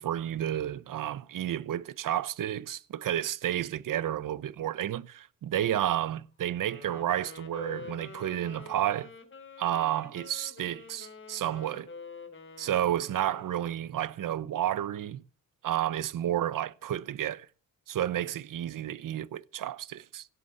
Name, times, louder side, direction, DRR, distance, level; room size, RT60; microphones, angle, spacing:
voice 1, 0.0-9.1 9.6-11.9 12.6-15.2 15.6-17.5 17.9-20.3, right 11 dB, 65° right, 0.8 m, -31 dB
Wind instrument woodwind instrument, 6.6-14.1, left 4 dB, 35° left, 3.1 m, -47 dB
17.0 x 8.0 x 7.8 m
cardioid pair, 105°, 34 cm